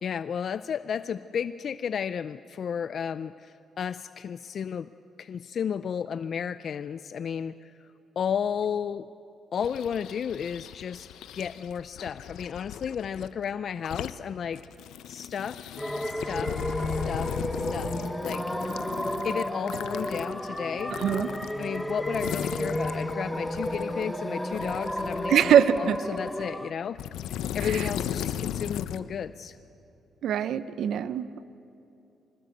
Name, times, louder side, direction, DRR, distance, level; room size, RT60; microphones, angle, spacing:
voice 1, 0.0-4.9 5.2-7.9 8.2-9.1 9.5-14.6 15.1-15.7 16.0-16.6 17.1-17.3 17.6-18.5 19.2-21.0 21.6-25.4 25.8-27.0 27.5-29.6, left 7 dB, 55° left, 14 dB, 0.5 m, -33 dB
sound 1, 9.6-13.3 13.7-14.1 14.5-24.0 24.5-26.4 27.0-29.0, left 10 dB, 85° left, 0.8 m, -36 dB
sound 2, 15.8-26.7, equal, 5° left, 1.1 m, -32 dB
voice 2, 21.0-21.3 25.3-26.0 27.6-27.8 30.2-31.4, right 9 dB, 70° right, 14 dB, 0.8 m, -23 dB
25.0 x 20.5 x 8.0 m, 2.8 s
cardioid pair, 90°, 0 cm